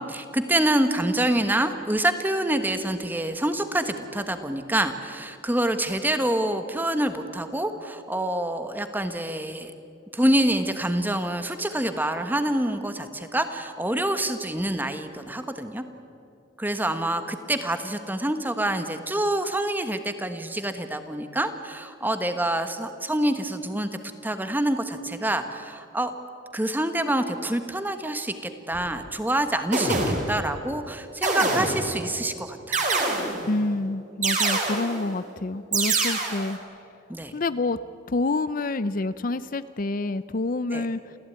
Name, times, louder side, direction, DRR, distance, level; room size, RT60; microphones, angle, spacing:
voice 1, 0.0-9.7 10.1-15.8 16.6-23.9 24.2-26.1 26.5-30.0 30.3-32.8 37.1-37.3 40.7-40.9, right 1 dB, 10° right, 8 dB, 1.4 m, -26 dB
sound 1, 28.7-28.9 29.7-30.5 31.2-32.0 32.7-33.6 34.2-35.0 35.7-36.5, right 3 dB, 40° right, 3.7 m, -25 dB
voice 2, 33.4-36.6 37.3-37.8 38.1-41.0, left 2 dB, 45° left, 14 dB, 0.6 m, -27 dB
28.5 x 15.5 x 9.4 m, 2.6 s
head